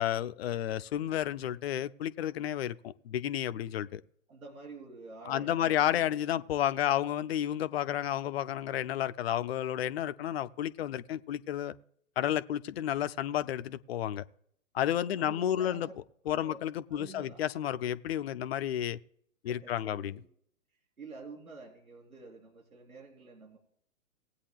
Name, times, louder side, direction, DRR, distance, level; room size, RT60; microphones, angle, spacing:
voice 1, 0.0-4.0 5.3-11.7 12.2-14.2 14.7-15.9 16.3-19.0 19.4-20.2, left 11 dB, 45° left, 0.5 m, -31 dB
voice 2, 4.3-6.1 6.3-6.4 15.2-15.9 16.3-17.4 19.5-20.3 21.0-23.6, right 3 dB, 80° right, 3.5 m, -49 dB
19.5 x 8.6 x 2.3 m
figure-of-eight pair, 120°, 42 cm